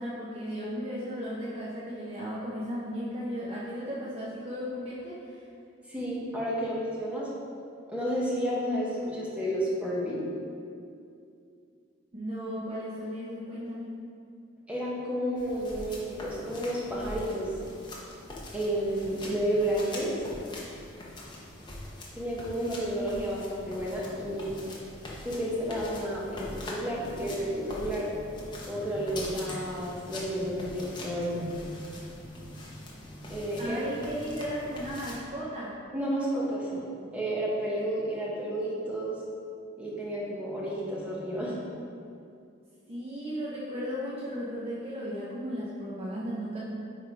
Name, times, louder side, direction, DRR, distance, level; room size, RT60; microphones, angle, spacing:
voice 1, 0.0-5.4 12.1-14.0 33.6-35.8 42.9-46.6, equal, 30° right, -6 dB, 0.8 m, -35 dB
voice 2, 5.9-7.3 7.9-10.2 14.7-17.5 18.5-20.1 22.1-24.5 25.2-28.1 28.6-31.5 33.3-33.8 35.9-36.8 37.1-39.2 39.8-41.6, equal, 5° right, -6 dB, 1.3 m, -31 dB
sound 1, 15.4-35.2, left 1 dB, 25° left, 1.0 m, -43 dB
9.2 x 3.7 x 4.6 m, 2.5 s
head